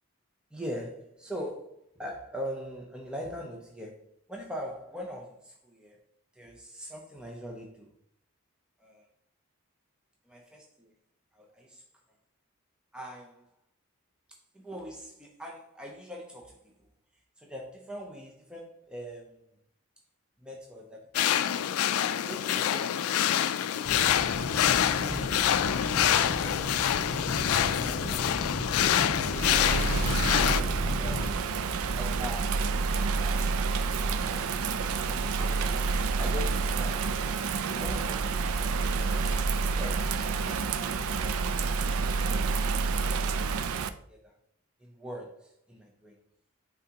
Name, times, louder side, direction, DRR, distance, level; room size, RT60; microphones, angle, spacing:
voice 1, 0.5-6.0 6.3-7.9 8.8-9.1 10.3-10.9 11.3-11.8 12.9-13.4 14.5-16.7 17.4-19.5 20.4-21.6 22.2-23.9 31.0-33.2 33.8-37.2 37.7-39.1 39.7-40.7 41.2-41.4 44.1-44.3 44.8-46.2, equal, 5° right, -1 dB, 0.6 m, -43 dB
sound 1, 21.1-30.6, left 10 dB, 85° left, 0.3 m, -26 dB
sound 2, 23.9-31.3, left 1 dB, 55° left, 0.9 m, -35 dB
Bird vocalization bird call bird song / Rain, 29.3-43.9, right 4 dB, 85° right, 0.4 m, -28 dB
9.3 x 3.6 x 2.9 m, 0.67 s
head